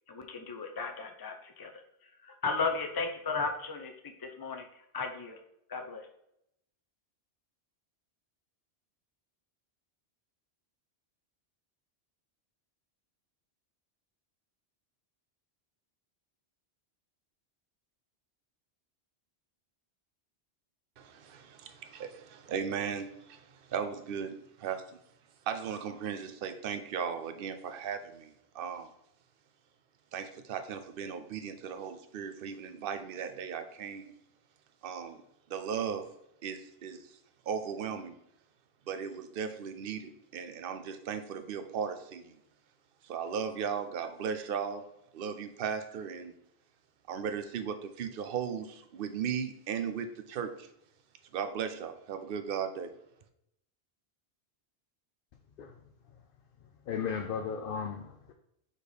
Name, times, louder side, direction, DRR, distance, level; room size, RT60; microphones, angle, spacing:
voice 1, 0.1-1.7 2.4-3.9 4.4-4.6 4.9-5.4 5.7-6.0, left 4 dB, 30° left, 5 dB, 0.5 m, -34 dB
voice 2, 21.0-25.0 25.5-28.9 30.1-34.1 34.8-35.2 35.5-36.1 36.4-37.1 37.5-38.1 38.9-42.4 43.0-44.9 45.1-46.3 47.1-50.7 51.3-52.9, right 7 dB, 60° right, 9 dB, 0.8 m, -37 dB
voice 3, 56.9-58.3, left 6 dB, 60° left, 4 dB, 0.7 m, -35 dB
5.0 x 4.2 x 5.1 m, 0.78 s
omnidirectional pair, 1.1 m